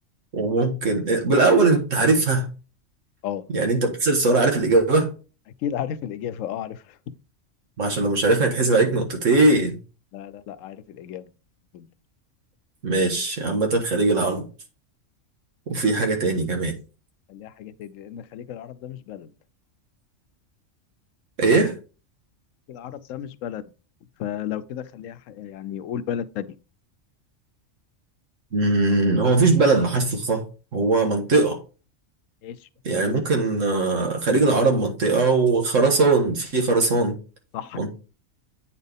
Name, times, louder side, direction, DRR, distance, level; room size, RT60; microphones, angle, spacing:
voice 1, 0.3-2.5 3.5-5.1 7.8-9.8 12.8-14.5 15.7-16.7 21.4-21.7 28.5-30.4 30.7-31.6 32.8-37.2 37.7-37.9, right 3 dB, 85° right, 1.8 m, -20 dB
voice 2, 5.6-6.8 10.1-11.3 11.7-11.9 17.3-19.3 22.7-23.6 24.2-26.5 32.4-32.5 32.9-33.2 37.5-37.8, left 10 dB, 90° left, 1.0 m, -33 dB
8.7 x 4.2 x 3.5 m
omnidirectional pair, 1.3 m